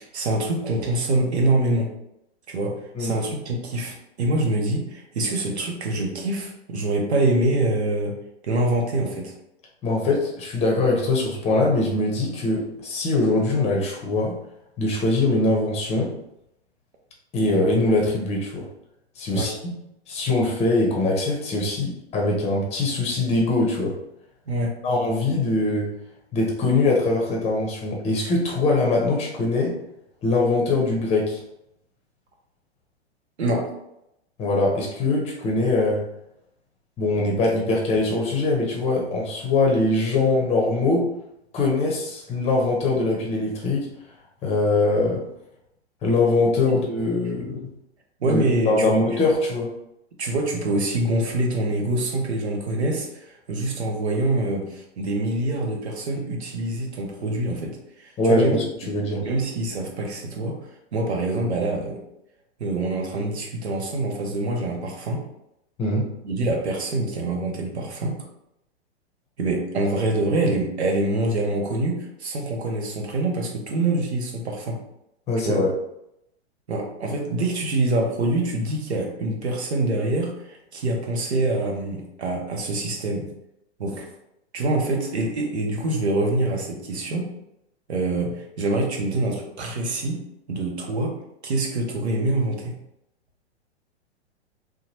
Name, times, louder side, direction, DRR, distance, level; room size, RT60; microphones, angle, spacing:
voice 1, 0.0-1.9 2.5-8.1 8.4-9.3 19.3-19.5 24.5-24.7 33.4-33.7 46.7-46.8 48.2-49.0 50.2-58.6 59.2-60.6 60.9-62.0 62.6-65.2 66.2-68.2 69.4-74.8 75.4-75.6 76.7-83.3 83.8-84.1 84.5-87.3 87.9-90.2 90.5-91.2 91.4-92.7, right 2 dB, 75° right, 1 dB, 0.9 m, -25 dB
voice 2, 9.8-14.4 14.8-16.1 17.3-18.7 19.2-19.7 20.1-24.0 24.8-25.9 26.3-29.7 30.2-31.4 34.4-36.0 37.0-41.1 41.5-43.9 44.4-45.2 46.0-47.7 48.3-49.7 58.2-59.2 65.8-66.1 75.3-75.7, left 2 dB, 20° left, -1 dB, 0.7 m, -22 dB
2.8 x 2.2 x 2.8 m, 0.82 s
hypercardioid pair, 110°, 33 cm